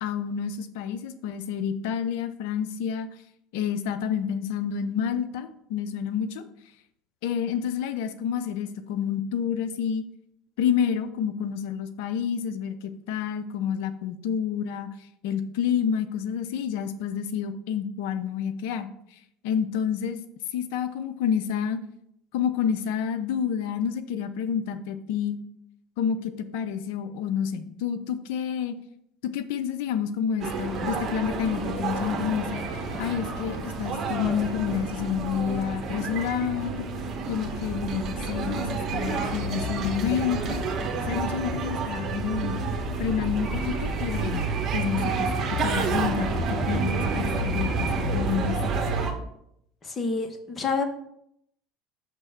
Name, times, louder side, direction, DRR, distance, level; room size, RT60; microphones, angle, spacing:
voice 1, 0.0-3.1 3.5-6.4 7.2-10.0 10.6-14.9 15.2-18.9 19.4-20.2 20.5-21.8 22.3-25.4 26.0-28.8 29.2-36.8 37.3-40.6 41.1-42.6 43.0-44.5 44.7-45.3 45.6-48.7, left 8 dB, 75° left, 11 dB, 0.5 m, -29 dB
sound 1, 30.4-49.1, right 3 dB, 45° right, 1.2 m, -29 dB
voice 2, 49.8-50.8, left 4 dB, 30° left, 6 dB, 1.1 m, -28 dB
6.1 x 3.3 x 5.6 m, 0.74 s
hypercardioid pair, 85°, 0 cm